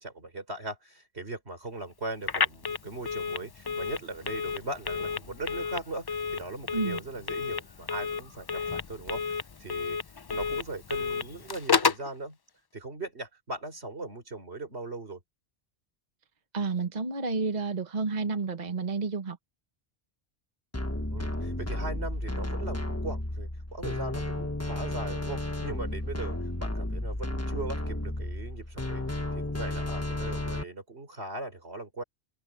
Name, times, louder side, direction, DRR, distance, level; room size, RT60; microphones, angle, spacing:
voice 1, 0.0-10.0 10.3-12.4 12.7-15.2 21.1-32.0, right 2 dB, 80° right, 4.7 m, -39 dB
Telephone, 2.2-12.1, left 5 dB, 40° left, 0.3 m, -31 dB
voice 2, 16.5-19.4, right 4 dB, 40° right, 1.4 m, -30 dB
sound 1, 20.7-30.6, left 1 dB, 15° left, 1.3 m, -33 dB
open air
omnidirectional pair, 1.1 m